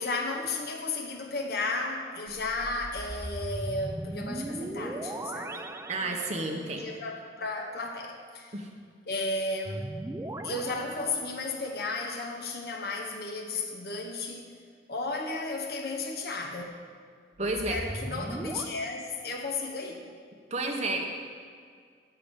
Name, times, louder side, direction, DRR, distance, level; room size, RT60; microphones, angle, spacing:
voice 1, 0.0-5.7 6.0-8.5 9.1-9.9 10.4-14.6 14.9-16.7 17.4-20.1, left 3 dB, 60° left, 1 dB, 1.0 m, -34 dB
sound 1, 2.3-6.8 9.6-11.7 17.4-18.7, right 1 dB, 15° right, 0.4 m, -38 dB
voice 2, 5.9-6.8 8.5-8.7 17.4-17.8 20.5-21.0, right 2 dB, 40° right, 2 dB, 1.1 m, -31 dB
8.1 x 6.8 x 7.3 m, 2.1 s
head